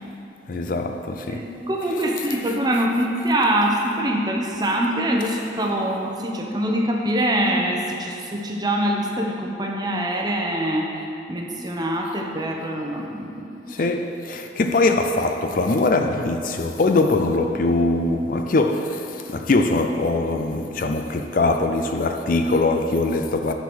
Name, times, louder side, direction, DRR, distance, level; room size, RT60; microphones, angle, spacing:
voice 1, 0.5-1.5 2.3-2.4 13.7-23.5, left 2 dB, 50° left, 0.4 m, -22 dB
voice 2, 1.3-10.9 11.3-13.5, right 1 dB, 25° right, 0.8 m, -24 dB
10.5 x 4.7 x 6.1 m
head